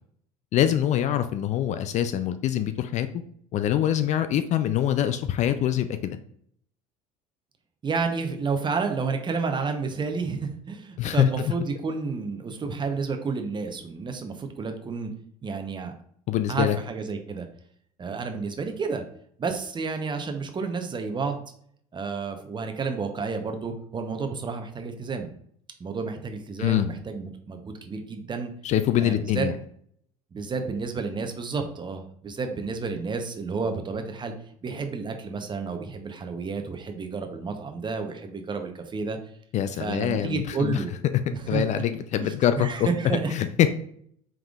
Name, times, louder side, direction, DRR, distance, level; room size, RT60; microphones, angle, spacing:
voice 1, 0.5-3.1 3.5-6.2 11.0-11.5 16.3-16.8 26.6-26.9 28.6-29.6 39.5-40.8 41.5-42.9 43.3-43.7, left 11 dB, 40° left, 10 dB, 0.4 m, -24 dB
voice 2, 7.8-15.1 15.4-15.9 16.5-17.5 18.0-19.0 19.4-21.4 21.9-25.3 25.8-28.5 29.0-29.5 30.3-34.3 34.6-39.2 39.8-40.9 41.3-41.8 42.2-43.3, right 4 dB, 25° right, 5 dB, 0.8 m, -30 dB
5.1 x 3.5 x 2.4 m, 0.64 s
hypercardioid pair, 70°, 18 cm